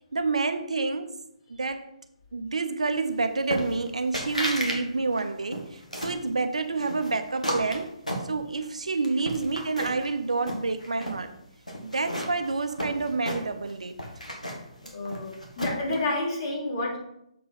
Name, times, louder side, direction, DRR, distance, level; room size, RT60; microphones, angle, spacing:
voice 1, 0.1-1.1 1.5-1.9 2.3-8.0 8.3-11.3 11.8-13.9, right 3 dB, 70° right, 0.7 m, -28 dB
sound 1, 3.5-3.9 4.1-4.8 5.1-6.2 6.8-8.7 9.0-10.1 10.4-11.2 11.7-13.7 14.0-15.9, equal, 90° left, 2.0 m, -33 dB
voice 2, 14.9-17.0, left 2 dB, 40° left, 3.2 m, -29 dB
7.1 x 4.7 x 5.7 m
figure-of-eight pair, 135°, 4 cm